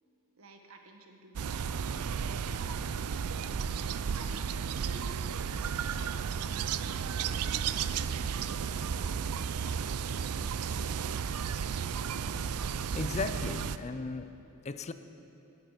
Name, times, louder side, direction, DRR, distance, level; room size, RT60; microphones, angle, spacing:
voice 1, 0.4-3.5 4.1-7.9 8.3-10.9, right 2 dB, 70° right, 3 dB, 1.5 m, -52 dB
sound 1, 1.4-13.8, right 7 dB, 90° right, 0.5 m, -33 dB
sound 2, 4.0-13.4, equal, ahead, 3.5 m, -62 dB
voice 2, 12.6-14.3 14.6-14.9, left 3 dB, 30° left, 10 dB, 0.5 m, -36 dB
17.5 x 12.0 x 5.0 m, 2.8 s
head